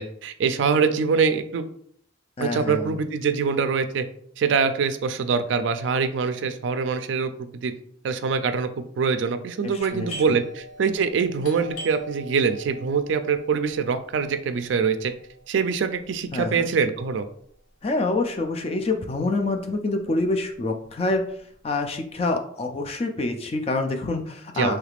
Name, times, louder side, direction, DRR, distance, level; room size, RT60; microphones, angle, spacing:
voice 1, 0.0-1.6 2.4-4.1 4.4-7.3 7.6-7.7 8.0-15.1 15.5-17.2 24.6-24.8, right 5 dB, 75° right, 10 dB, 0.3 m, -24 dB
voice 2, 2.4-3.0 9.9-10.4 16.3-16.7 17.8-21.2 21.6-24.8, left 2 dB, 30° left, 4 dB, 0.3 m, -26 dB
Doorbell, 9.8-19.2 19.4-19.5 20.2-20.5 20.8-22.2, right 1 dB, 90° left, 1.0 m, -44 dB
3.3 x 3.2 x 2.4 m, 0.65 s
head